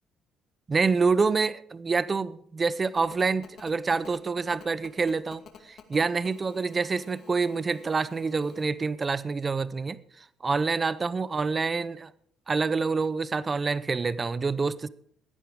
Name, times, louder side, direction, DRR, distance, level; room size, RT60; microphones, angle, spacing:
voice 1, 0.7-12.1 12.5-14.9, right 4 dB, 25° right, 0.6 m, -27 dB
Telephone, 3.0-8.7, left 7 dB, 55° left, 2.1 m, -50 dB
15.5 x 10.5 x 4.9 m
cardioid pair, 125°, 0 cm